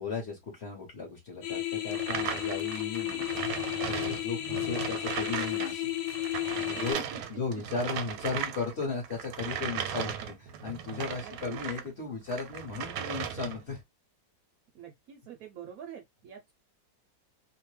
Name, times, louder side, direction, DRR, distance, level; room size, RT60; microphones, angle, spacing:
voice 1, 0.0-5.9 6.6-7.0 7.3-10.1 10.6-13.8, left 4 dB, 45° left, 1.0 m, -36 dB
sound 1, 1.4-6.9, left 14 dB, 80° left, 1.2 m, -33 dB
sound 2, 1.9-11.9 12.3-13.7, right 8 dB, 85° right, 1.3 m, -37 dB
voice 2, 6.7-7.2 9.9-10.1 11.2-11.6 14.7-16.5, right 7 dB, 70° right, 0.9 m, -45 dB
2.8 x 2.1 x 3.1 m
omnidirectional pair, 1.9 m